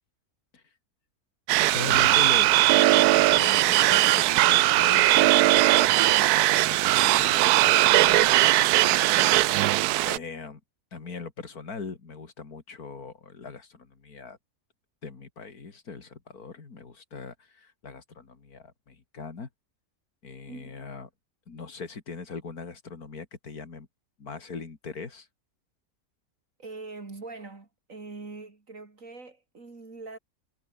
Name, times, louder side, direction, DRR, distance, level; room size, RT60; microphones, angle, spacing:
sound 1, 1.5-10.2, right 16 dB, 80° right, 1.1 m, -20 dB
voice 1, 1.6-6.2 6.6-9.3 10.0-10.6 10.9-14.4 15.0-19.5 20.2-21.1 21.5-23.9 24.2-25.3, left 4 dB, 75° left, 3.1 m, -40 dB
voice 2, 20.5-20.8 26.6-30.2, right 3 dB, 55° right, 3.2 m, -42 dB
omnidirectional pair, 1.6 m